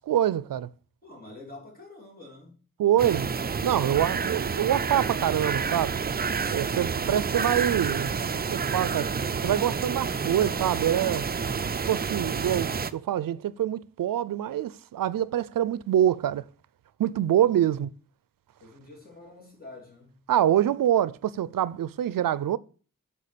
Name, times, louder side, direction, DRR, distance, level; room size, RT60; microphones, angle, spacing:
voice 1, 0.1-0.7 2.8-3.3 3.6-6.0 6.5-8.1 8.5-9.1 9.4-11.3 11.9-16.4 17.0-17.9 20.3-22.6, right 11 dB, 85° right, 0.5 m, -25 dB
voice 2, 1.0-3.2 17.7-17.8 18.6-20.1, left 2 dB, 25° left, 3.2 m, -47 dB
sound 1, 3.0-12.9, right 5 dB, 30° right, 0.4 m, -29 dB
8.5 x 5.6 x 6.8 m
wide cardioid pair, 170°, 33 cm